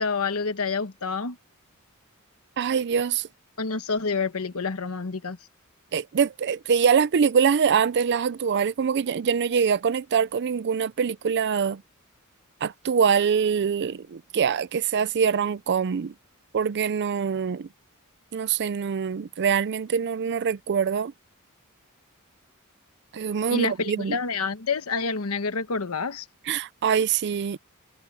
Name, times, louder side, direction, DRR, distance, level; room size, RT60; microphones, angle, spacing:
voice 1, 0.0-1.4 3.6-5.4 23.5-26.3, left 4 dB, 80° left, 1.2 m, -28 dB
voice 2, 2.6-3.3 5.9-11.8 12.6-16.1 16.5-17.7 18.3-21.1 23.1-24.1 26.5-27.6, right 6 dB, 50° right, 0.4 m, -24 dB
head